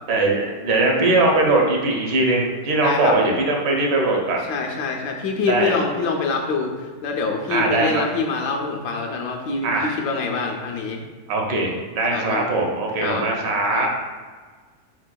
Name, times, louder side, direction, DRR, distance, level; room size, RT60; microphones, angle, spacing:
voice 1, 0.1-4.4 5.5-5.7 7.5-8.0 9.6-9.9 11.3-13.9, right 2 dB, 80° right, 0 dB, 1.5 m, -20 dB
voice 2, 2.8-3.2 4.5-11.0 12.1-12.5 13.0-13.3 13.7-13.9, left 4 dB, 75° left, 2 dB, 1.1 m, -25 dB
4.8 x 4.5 x 2.2 m, 1.5 s
omnidirectional pair, 1.9 m